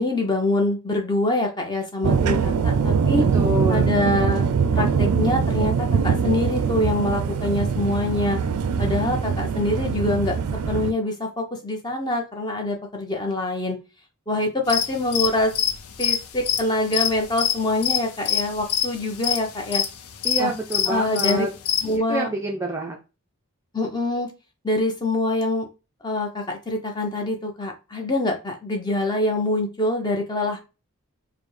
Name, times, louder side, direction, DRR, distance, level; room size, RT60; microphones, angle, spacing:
voice 1, 0.0-3.2 3.7-4.5 4.7-8.4 8.8-10.4 10.7-13.8 14.3-15.5 16.0-19.8 20.4-20.5 20.9-21.5 21.8-22.3 23.7-24.3 24.6-25.7 26.0-30.6, left 2 dB, 20° left, 2 dB, 0.7 m, -25 dB
sound 1, 2.0-10.9, right 6 dB, 85° right, 0.4 m, -22 dB
voice 2, 3.3-4.0 20.2-21.5 22.1-23.0, right 2 dB, 10° right, 0 dB, 0.4 m, -27 dB
sound 2, 14.7-21.9, left 10 dB, 85° left, 0.5 m, -25 dB
5.0 x 2.1 x 3.1 m, 0.29 s
head